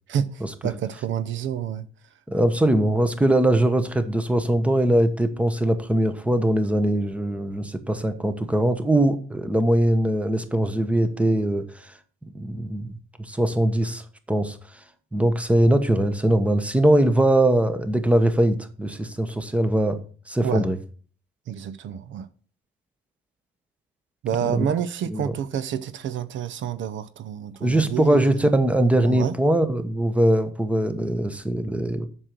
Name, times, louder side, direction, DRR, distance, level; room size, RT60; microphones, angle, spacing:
voice 1, 0.1-1.9 20.4-20.6 21.5-22.3 24.2-28.4 29.1-29.3, right 8 dB, 70° right, 0.7 m, -28 dB
voice 2, 2.3-12.0 12.3-14.8 15.1-20.8 24.5-24.7 25.1-25.3 27.6-32.1, right 1 dB, 5° right, 1.2 m, -21 dB
7.3 x 6.3 x 6.7 m
cardioid pair, 90°, 20 cm